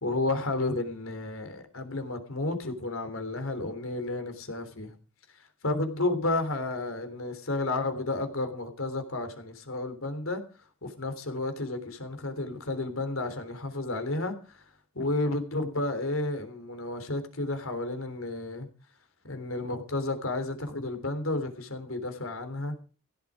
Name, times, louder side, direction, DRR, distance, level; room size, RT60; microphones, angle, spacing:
voice 1, 0.0-4.9 5.3-10.4 10.8-14.7 14.9-18.7 19.2-22.7, left 2 dB, 70° left, 3.3 m, -32 dB
16.0 x 11.0 x 5.0 m
head